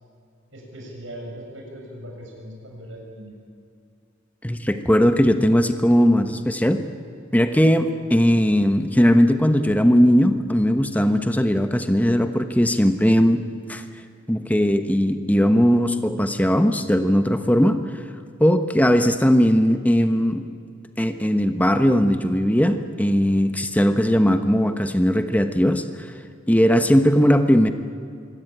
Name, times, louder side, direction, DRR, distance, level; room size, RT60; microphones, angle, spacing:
voice 1, 0.5-3.4, equal, 90° right, 0 dB, 6.9 m, -39 dB
voice 2, 4.4-6.8 7.3-13.8 14.3-17.8 18.4-20.4 21.0-25.8 26.5-27.7, equal, 10° left, 7 dB, 1.1 m, -18 dB
25.0 x 17.5 x 10.0 m, 2.4 s
head